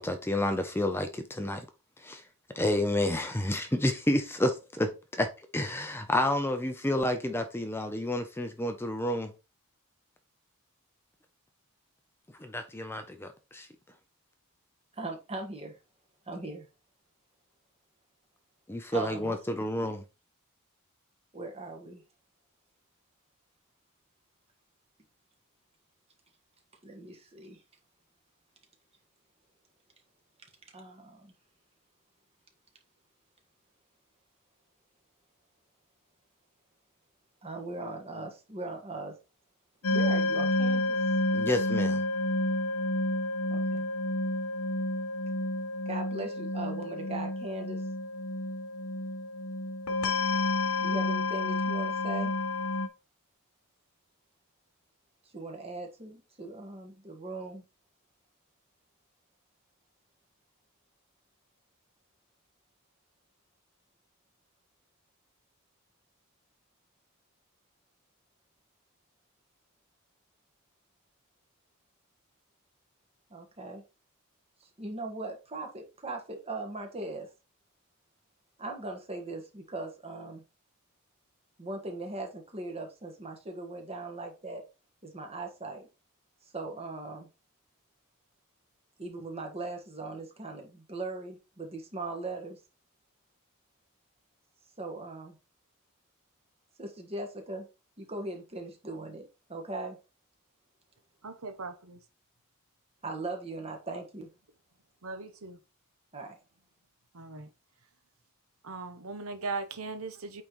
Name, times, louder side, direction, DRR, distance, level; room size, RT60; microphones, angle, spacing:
voice 1, 0.0-1.7 2.0-2.2 2.5-4.9 5.2-5.3 5.5-9.3 12.4-13.7 18.7-20.0 41.3-42.0, left 1 dB, 10° left, 0.6 m, -30 dB
voice 2, 14.9-15.8 16.3-16.7 18.9-19.6 21.3-22.0 26.8-27.6 30.7-31.3 37.4-39.1 39.9-41.0 43.5-43.8 45.8-47.8 50.8-52.3 55.3-57.6 73.3-73.8 74.6-77.3 78.6-80.4 81.6-84.6 85.0-85.9 86.5-87.3 89.0-92.6 94.8-95.3 96.8-97.7 98.0-100.0 103.0-104.3 106.1-106.4, right 2 dB, 25° right, 1.5 m, -39 dB
sound 1, 39.8-52.9, left 2 dB, 65° left, 0.9 m, -30 dB
voice 3, 101.2-102.0 105.0-105.6 107.1-107.5 108.6-110.4, right 3 dB, 65° right, 0.9 m, -38 dB
8.5 x 3.8 x 3.1 m
head